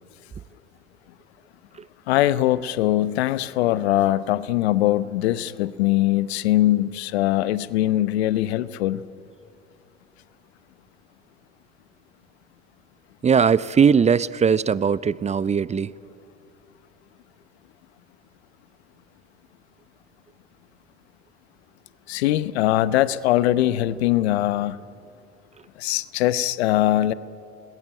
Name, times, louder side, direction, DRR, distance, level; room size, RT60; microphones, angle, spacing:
voice 1, 2.1-9.0 22.1-24.8 25.8-27.1, left 14 dB, 70° left, 17 dB, 0.9 m, -21 dB
voice 2, 13.2-15.9, right 6 dB, 20° right, 19 dB, 0.6 m, -19 dB
29.5 x 20.5 x 9.1 m, 2.6 s
hypercardioid pair, 70°, 33 cm